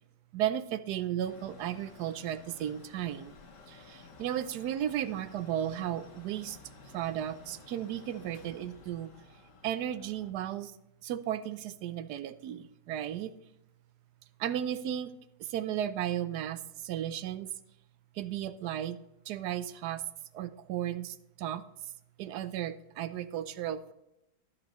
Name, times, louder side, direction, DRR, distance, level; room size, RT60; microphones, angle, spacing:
voice 1, 0.3-3.3 3.7-6.6 6.9-9.1 9.6-10.7 11.0-13.3 14.4-15.1 15.4-17.5 18.2-19.0 19.3-20.0 20.3-21.6 22.2-23.9, right 11 dB, 70° right, 12 dB, 1.1 m, -34 dB
Mechanical fan, 1.2-10.3, left 4 dB, 70° left, 1.9 m, -54 dB
12.5 x 8.8 x 3.0 m, 0.85 s
omnidirectional pair, 2.0 m